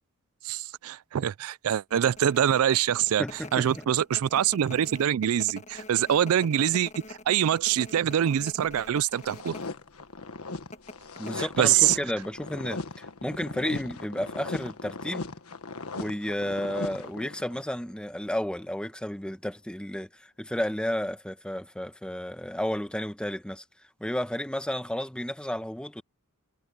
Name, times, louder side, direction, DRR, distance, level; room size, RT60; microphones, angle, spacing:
voice 1, 0.4-3.2 3.5-9.6 11.4-12.0, right 10 dB, 70° right, 0.3 m, -24 dB
sound 1, 1.9-9.7 10.0-10.1 10.7-12.4 12.7-12.8, left 2 dB, 35° left, 1.3 m, -44 dB
voice 2, 3.2-3.8 11.2-15.3 15.9-23.6 24.0-26.0, equal, 5° left, 1.2 m, -32 dB
sound 2, 9.1-17.7, left 3 dB, 80° left, 1.4 m, -38 dB
head